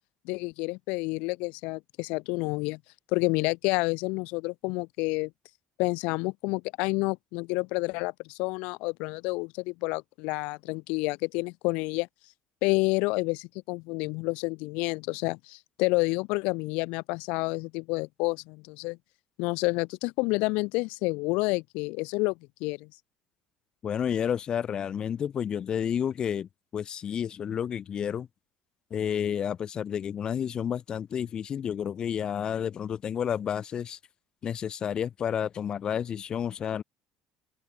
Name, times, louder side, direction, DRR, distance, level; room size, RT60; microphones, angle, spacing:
voice 1, 0.2-2.8 3.1-5.3 5.8-12.1 12.6-19.0 19.4-22.9, left 27 dB, 80° left, 2.4 m, -29 dB
voice 2, 23.8-28.3 28.9-34.0 34.4-36.8, left 8 dB, 40° left, 2.2 m, -30 dB
open air
supercardioid pair, 105°, 2 cm